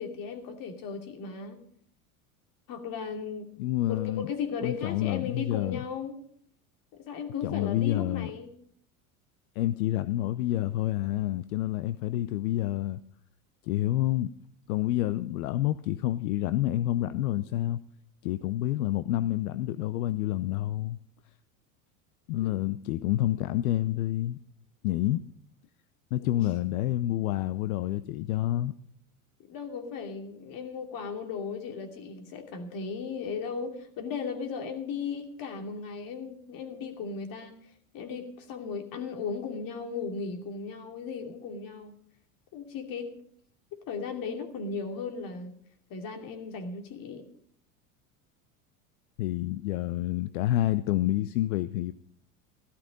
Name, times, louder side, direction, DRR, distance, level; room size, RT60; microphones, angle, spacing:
voice 1, 0.0-1.6 2.7-3.5 3.9-6.1 6.9-8.5 22.4-22.5 26.2-26.4 29.5-37.6 37.9-42.0 42.5-43.1 43.7-45.6 45.9-47.2, left 5 dB, 50° left, 2.7 m, -36 dB
voice 2, 3.6-4.3 4.6-5.8 7.4-8.3 9.6-13.0 13.6-14.3 14.7-17.8 18.2-21.0 22.3-24.4 24.8-25.2 26.1-28.7 49.2-51.9, left 14 dB, 80° left, 0.7 m, -28 dB
14.5 x 12.5 x 5.2 m
supercardioid pair, 100°, 42 cm